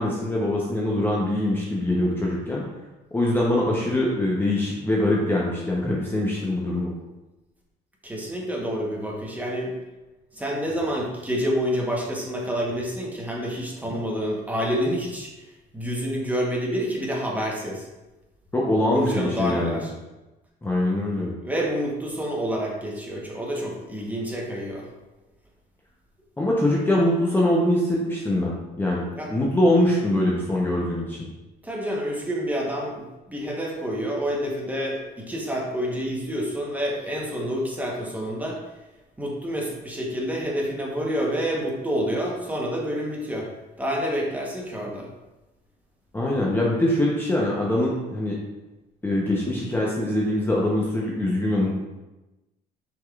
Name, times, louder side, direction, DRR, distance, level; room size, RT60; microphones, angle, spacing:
voice 1, 0.0-2.6 3.1-6.9 18.5-19.9 20.6-21.3 26.4-31.3 46.1-48.3 49.0-51.7, left 1 dB, 10° left, -4 dB, 0.8 m, -23 dB
voice 2, 8.0-9.7 10.3-15.3 15.7-17.9 18.9-19.9 21.4-24.9 29.1-29.3 31.6-38.6 39.2-43.5 43.8-45.1, equal, 10° right, -2 dB, 1.0 m, -28 dB
6.2 x 3.6 x 2.4 m, 1.0 s
cardioid pair, 110°, 17 cm